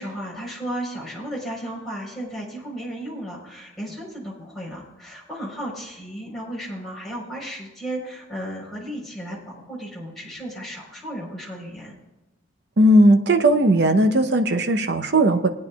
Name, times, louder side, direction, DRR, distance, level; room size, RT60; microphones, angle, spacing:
voice 1, 0.0-11.9, right 1 dB, ahead, -7 dB, 3.9 m, -34 dB
voice 2, 12.8-15.5, right 1 dB, 55° right, 6 dB, 0.7 m, -17 dB
20.5 x 9.5 x 2.3 m, 1.0 s
head